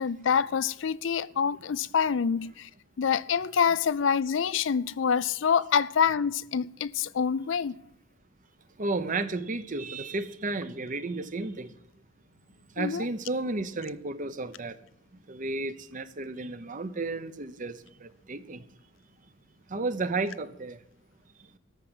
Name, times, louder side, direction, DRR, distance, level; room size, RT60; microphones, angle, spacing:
voice 1, 0.0-2.7 3.0-7.7 12.8-13.1, left 7 dB, 70° left, 0.5 m, -26 dB
voice 2, 8.8-11.7 12.8-14.8 15.3-18.6 19.7-20.8, right 3 dB, 40° right, 0.8 m, -33 dB
14.0 x 5.9 x 9.8 m
head